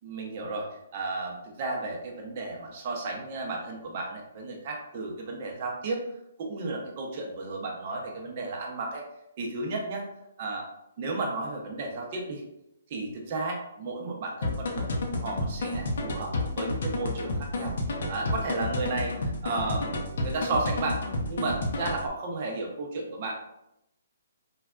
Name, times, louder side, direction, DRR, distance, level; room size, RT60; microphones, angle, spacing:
voice 1, 0.0-6.0 6.4-9.0 9.4-10.1 10.4-10.6 11.0-12.4 12.9-14.9 15.2-17.7 18.1-21.0 21.3-23.3, right 3 dB, 40° right, 0 dB, 0.6 m, -33 dB
sound 1, 14.4-22.1, left 2 dB, 65° left, 0.6 m, -31 dB
3.3 x 2.2 x 2.4 m, 0.83 s
hypercardioid pair, 155°, 0 cm